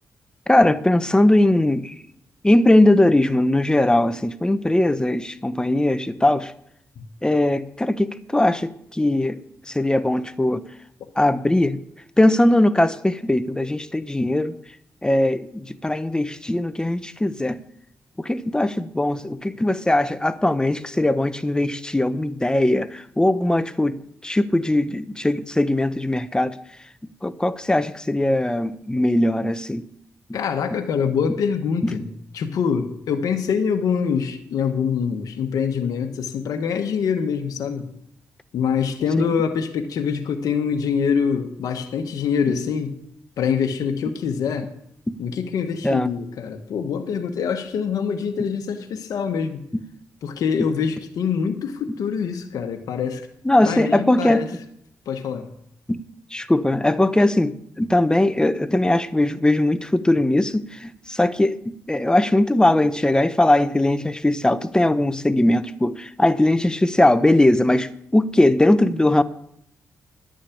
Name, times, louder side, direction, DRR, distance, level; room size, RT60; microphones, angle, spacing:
voice 1, 0.5-1.9 2.4-6.5 7.2-9.4 9.7-10.6 11.2-11.8 12.2-14.6 15.0-17.6 18.2-26.6 27.2-29.8 31.8-32.0 39.2-39.3 45.1-45.2 45.8-46.1 53.4-54.5 55.9-56.0 56.3-69.2, left 1 dB, 15° left, 13 dB, 0.8 m, -20 dB
voice 2, 30.3-32.1 32.3-37.9 38.5-43.0 43.4-44.7 45.2-49.6 50.2-53.2 53.6-54.5 55.1-55.5, left 6 dB, 80° left, 6 dB, 1.2 m, -24 dB
11.5 x 6.3 x 8.4 m, 0.72 s
cardioid pair, 65°, 6 cm